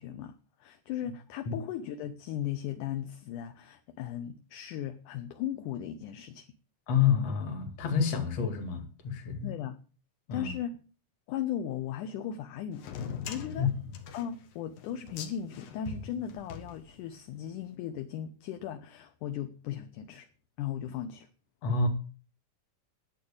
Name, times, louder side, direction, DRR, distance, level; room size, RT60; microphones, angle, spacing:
voice 1, 0.0-6.5 9.4-9.8 10.3-10.8 11.3-12.9 13.3-13.7 14.1-20.3 20.6-21.3, left 10 dB, 75° left, 2.3 m, -37 dB
voice 2, 6.9-9.5 10.3-10.5 13.6-13.7 21.6-21.9, left 6 dB, 50° left, 3.0 m, -28 dB
sound 1, 12.8-17.3, left 7 dB, 90° left, 3.3 m, -42 dB
11.0 x 8.2 x 8.7 m
omnidirectional pair, 4.0 m